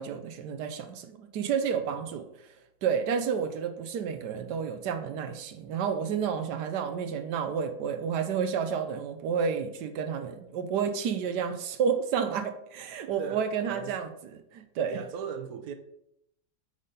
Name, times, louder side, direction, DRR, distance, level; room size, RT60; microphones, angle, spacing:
voice 1, 0.0-2.3 2.8-15.0, right 7 dB, 85° right, 1.4 m, -30 dB
voice 2, 13.2-14.0 14.9-15.7, right 7 dB, 65° right, 1.2 m, -38 dB
8.5 x 4.2 x 5.2 m
omnidirectional pair, 1.7 m